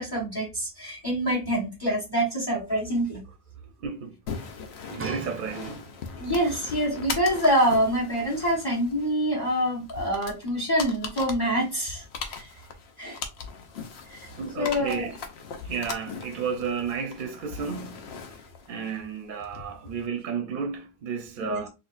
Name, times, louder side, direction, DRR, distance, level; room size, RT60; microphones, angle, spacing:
voice 1, 0.0-3.2 6.2-12.0 12.3-12.5 13.0-13.2 14.1-14.3 14.6-15.1 21.4-21.6, equal, 25° left, 1.2 m, -26 dB
voice 2, 3.8-4.2 4.9-5.9 14.4-15.1 15.6-18.1 18.7-21.7, right 6 dB, 60° right, 0.6 m, -32 dB
sound 1, 4.3-20.1, left 5 dB, 85° left, 0.9 m, -40 dB
sound 2, 5.0-6.3 7.0-7.1, right 3 dB, 15° right, 0.5 m, -38 dB
4.4 x 2.5 x 2.4 m
omnidirectional pair, 1.0 m